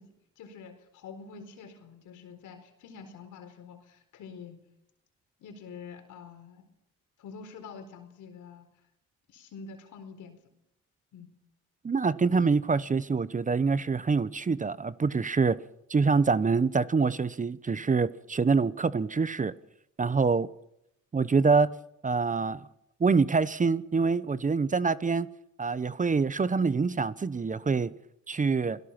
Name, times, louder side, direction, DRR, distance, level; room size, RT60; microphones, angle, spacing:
voice 1, 0.0-4.6 5.4-6.6 7.2-8.7 9.3-10.4 11.1-11.3, left 5 dB, 80° left, 4.3 m, -46 dB
voice 2, 11.8-15.6 15.9-19.5 20.0-20.5 21.1-21.7 22.0-22.6 23.0-25.3 25.6-27.9 28.3-28.8, right 4 dB, 25° right, 0.9 m, -25 dB
27.5 x 17.5 x 6.0 m
cardioid pair, 90°, 30 cm